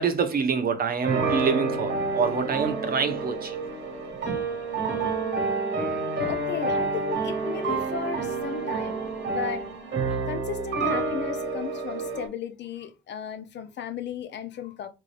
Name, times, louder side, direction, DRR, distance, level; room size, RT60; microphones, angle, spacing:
voice 1, 0.0-3.6 4.3-4.4, right 5 dB, 50° right, 0.8 m, -26 dB
sound 1, 1.0-12.3, right 3 dB, 65° right, 1.3 m, -28 dB
voice 2, 6.3-9.0 9.3-9.6 10.3-14.9, left 7 dB, 65° left, 0.6 m, -35 dB
3.7 x 2.7 x 3.2 m
cardioid pair, 90°, 20 cm